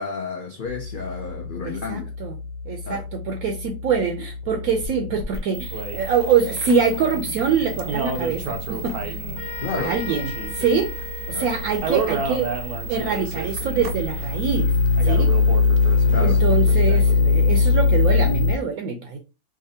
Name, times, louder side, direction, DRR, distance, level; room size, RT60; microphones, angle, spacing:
voice 1, 0.0-2.1 2.8-3.0 9.6-10.0 11.3-11.5 16.1-16.4, left 4 dB, 70° left, 0.5 m, -31 dB
sound 1, 0.7-18.5, left 3 dB, 45° right, 0.6 m, -24 dB
voice 2, 1.6-2.4 2.7-9.2 9.8-10.9 11.3-12.5 12.9-14.7 15.0-15.3 16.2-19.2, right 6 dB, 70° right, 1.0 m, -24 dB
sound 2, 5.7-17.2, right 4 dB, 90° right, 1.2 m, -32 dB
sound 3, 9.3-13.0, left 5 dB, 50° left, 1.3 m, -39 dB
4.8 x 2.6 x 2.7 m
omnidirectional pair, 1.6 m